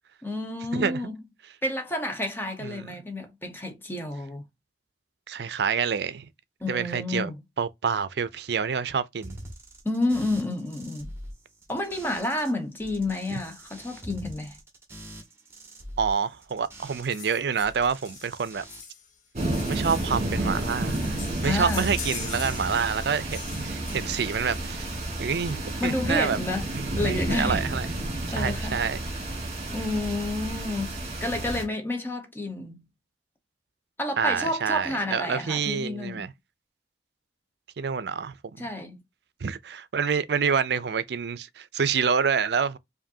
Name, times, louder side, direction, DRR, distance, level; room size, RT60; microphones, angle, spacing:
voice 1, 0.2-1.1 1.6-4.5 6.6-7.4 9.8-11.1 11.7-14.6 21.4-21.9 25.8-26.7 26.9-27.7 28.3-28.9 29.7-32.8 34.0-36.3 38.6-39.0, left 1 dB, 10° left, 0.8 m, -30 dB
voice 2, 2.6-2.9 5.3-6.3 6.7-7.3 7.6-9.4 13.3-13.4 16.0-18.7 19.7-21.2 21.4-24.9 25.2-26.4 26.7-27.9 28.4-29.0 34.2-36.3 37.8-38.7 39.4-42.8, right 6 dB, 65° right, 0.4 m, -27 dB
sound 1, 9.2-12.5 12.8-17.3 17.6-18.8, right 1 dB, 15° right, 1.4 m, -44 dB
sound 2, 17.1-25.4 26.5-26.6 26.9-27.0 27.3-27.4 27.8-28.4 28.9-29.0, left 6 dB, 45° left, 0.8 m, -43 dB
sound 3, 19.4-31.6, right 1 dB, 40° right, 1.6 m, -31 dB
4.9 x 2.6 x 2.7 m
head